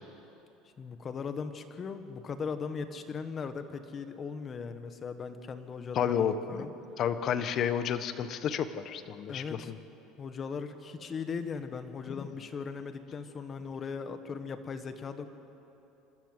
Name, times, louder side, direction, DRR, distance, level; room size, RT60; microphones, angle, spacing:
voice 1, 0.8-6.7 9.3-9.7 10.2-15.3, left 5 dB, 35° left, 9 dB, 1.6 m, -38 dB
voice 2, 5.9-6.7 7.0-9.8 12.2-12.3, left 8 dB, 50° left, 11 dB, 1.2 m, -31 dB
28.0 x 13.0 x 8.2 m, 2.9 s
supercardioid pair, 110°, 0 cm